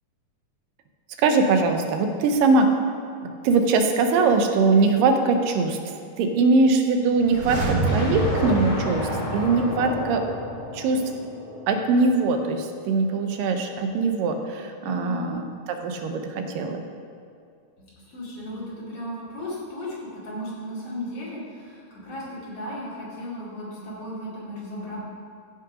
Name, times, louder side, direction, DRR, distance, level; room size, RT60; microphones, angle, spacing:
voice 1, 1.2-2.7 3.2-5.8 6.2-10.2 10.7-11.0 11.7-15.4 15.7-16.8, right 3 dB, 85° right, 5 dB, 2.5 m, -21 dB
sound 1, 7.1-10.1 10.3-10.4, right 2 dB, 55° right, 1.8 m, -28 dB
sound 2, 7.9-12.3, left 1 dB, 90° left, 4.2 m, -31 dB
voice 2, 14.8-15.3 17.8-25.0, left 1 dB, 50° left, -7 dB, 3.2 m, -35 dB
15.0 x 5.7 x 5.0 m, 2.3 s
omnidirectional pair, 3.9 m